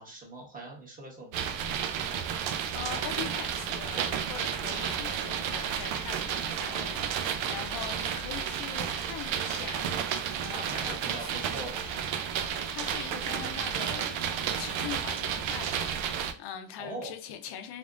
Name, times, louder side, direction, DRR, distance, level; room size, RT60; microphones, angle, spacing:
voice 1, 0.0-1.9 3.9-4.1 6.7-7.5 10.5-12.2 16.8-17.1, right 2 dB, 20° right, 1.3 m, -43 dB
sound 1, 1.3-16.3, right 8 dB, 85° right, 0.6 m, -32 dB
voice 2, 2.7-10.0 10.4-11.5 12.6-17.8, left 10 dB, 60° left, 0.7 m, -42 dB
3.5 x 3.5 x 2.4 m
cardioid pair, 140°, 45 cm